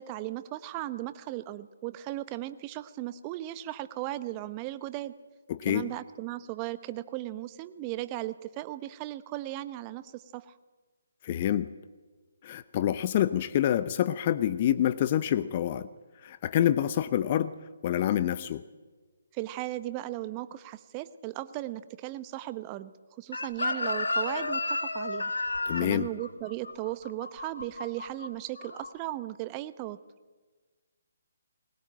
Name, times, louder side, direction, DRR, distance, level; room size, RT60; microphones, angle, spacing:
voice 1, 0.0-5.1 5.7-10.6 19.3-22.9 23.2-25.3 25.8-30.0, right 15 dB, 25° right, 14 dB, 1.0 m, -37 dB
voice 2, 5.5-5.9 11.2-11.7 12.4-15.9 16.2-17.5 17.8-18.6 25.7-26.1, left 11 dB, 35° left, 15 dB, 0.8 m, -27 dB
Chicken rooster, 23.3-28.3 28.6-28.9, left 2 dB, 75° left, 2.0 m, -32 dB
21.0 x 20.0 x 8.8 m, 1.3 s
figure-of-eight pair, 140°, 0 cm